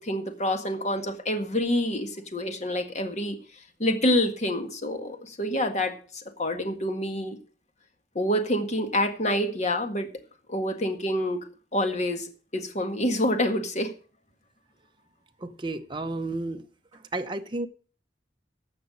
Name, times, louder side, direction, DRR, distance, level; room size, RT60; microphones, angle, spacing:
voice 1, 0.0-3.4 3.8-7.4 8.2-10.1 10.5-11.4 11.7-13.9, left 1 dB, 40° left, 1.8 m, -27 dB
voice 2, 15.4-16.7 16.9-17.7, right 2 dB, 30° right, 0.8 m, -32 dB
15.5 x 6.0 x 6.4 m
head